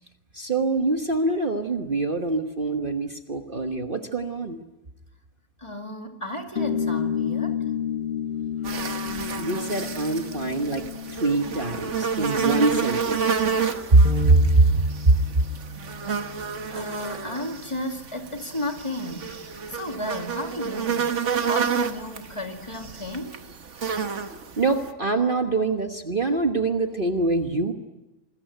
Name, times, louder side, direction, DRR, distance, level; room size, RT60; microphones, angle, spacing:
voice 1, 0.3-4.6 9.3-10.8 11.1-13.4 13.9-14.7 15.1-15.2 24.6-27.7, right 2 dB, 35° right, 5 dB, 1.4 m, -23 dB
voice 2, 5.6-7.8 16.7-23.4, left 1 dB, 20° left, 4 dB, 2.3 m, -34 dB
sound 1, 6.6-13.5, left 8 dB, 40° left, 1.9 m, -31 dB
sound 2, 8.6-24.9, right 6 dB, 55° right, 1.6 m, -30 dB
sound 3, 14.0-20.3, left 1 dB, 65° left, 2.0 m, -37 dB
27.5 x 21.5 x 9.3 m, 1.0 s
omnidirectional pair, 1.6 m